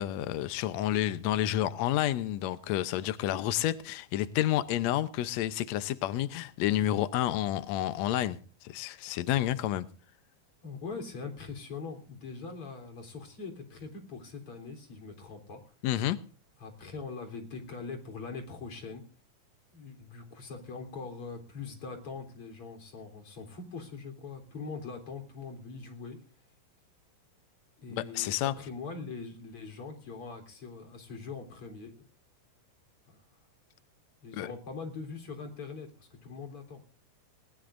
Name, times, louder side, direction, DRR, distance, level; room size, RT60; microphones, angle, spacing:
voice 1, 0.0-9.9 15.8-16.2 27.9-28.5 34.3-34.5, left 13 dB, 85° left, 1.5 m, -30 dB
voice 2, 10.6-15.6 16.6-19.0 19.7-26.2 27.8-31.9 33.1-33.2 34.2-36.8, left 4 dB, 40° left, 4.3 m, -42 dB
20.5 x 19.5 x 2.6 m
omnidirectional pair, 4.2 m